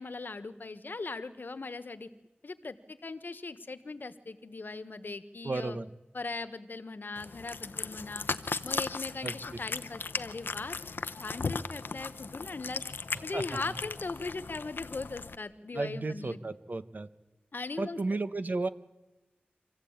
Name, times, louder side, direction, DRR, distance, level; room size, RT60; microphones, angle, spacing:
voice 1, 0.0-2.1 2.4-5.8 6.1-8.3 8.6-10.8 11.2-12.8 13.2-16.4 17.5-18.0, left 3 dB, 65° left, 12 dB, 1.3 m, -39 dB
voice 2, 5.4-5.9 9.2-9.3 13.3-13.6 15.7-17.1 17.8-18.7, right 3 dB, 55° right, 12 dB, 1.2 m, -33 dB
Cat, 7.2-15.4, left 4 dB, 85° left, 0.8 m, -37 dB
26.0 x 15.5 x 8.8 m, 1.0 s
wide cardioid pair, 50°, 4 cm